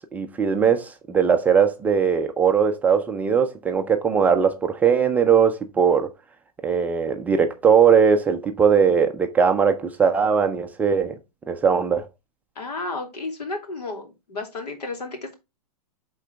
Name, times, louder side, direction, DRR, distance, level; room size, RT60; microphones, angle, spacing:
voice 1, 0.1-6.1 6.6-11.2 11.5-12.0, right 6 dB, 10° right, 0.3 m, -20 dB
voice 2, 12.6-15.3, left 3 dB, 85° left, 2.7 m, -32 dB
11.5 x 3.8 x 3.3 m
hypercardioid pair, 150°, 20 cm